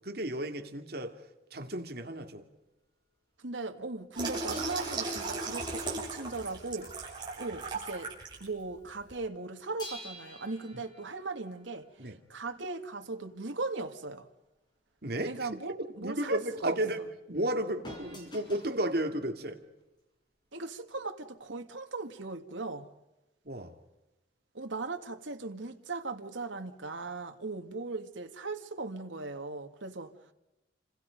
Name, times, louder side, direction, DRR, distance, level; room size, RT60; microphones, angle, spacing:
voice 1, 0.0-1.1 1.5-2.4 12.0-12.2 15.0-15.5 16.0-19.6 23.4-23.7, right 1 dB, 55° right, 2.7 m, -33 dB
voice 2, 3.4-8.1 8.4-11.9 12.3-14.3 15.2-16.8 20.5-22.9 24.5-30.1, right 3 dB, 90° right, 2.1 m, -38 dB
Water tap faucet / Sink (filling or washing), 4.1-8.4 8.9-9.1, right 3 dB, 25° right, 7.9 m, -36 dB
sound 1, 4.5-7.7 7.9-8.2 9.8-12.5 17.8-18.8 19.8-19.9, left 1 dB, 25° left, 6.3 m, -50 dB
30.0 x 26.0 x 5.3 m
head